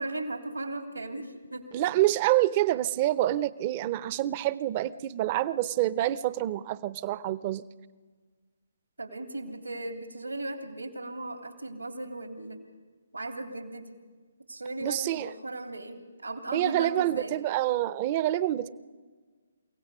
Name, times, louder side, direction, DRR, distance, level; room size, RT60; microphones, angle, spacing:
voice 1, 0.0-1.7 9.0-12.6 13.1-14.0 14.5-17.3, right 2 dB, 85° right, 6 dB, 2.9 m, -37 dB
voice 2, 1.7-7.6 14.8-15.3 16.5-18.7, right 14 dB, 30° right, 18 dB, 0.6 m, -27 dB
29.5 x 17.0 x 5.6 m, 1.5 s
figure-of-eight pair, 140°, 0 cm